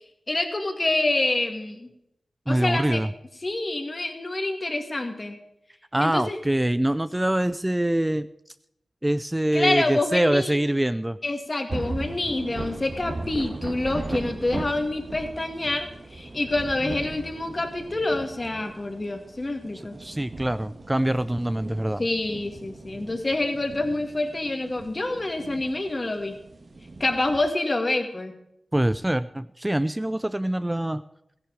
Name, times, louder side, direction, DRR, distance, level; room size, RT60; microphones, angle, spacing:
voice 1, 0.3-1.9 2.5-3.0 3.4-5.4 6.0-6.4 9.5-10.6 11.2-20.0 22.0-26.4 27.0-28.3, left 2 dB, 40° left, 4 dB, 2.3 m, -27 dB
voice 2, 2.5-3.1 5.9-8.3 9.0-11.2 20.0-22.0 28.7-31.0, right 1 dB, 15° right, 13 dB, 0.5 m, -24 dB
sound 1, 11.7-27.4, right 2 dB, 55° right, 1.5 m, -38 dB
15.0 x 10.5 x 5.0 m, 0.80 s
cardioid pair, 40°, 0 cm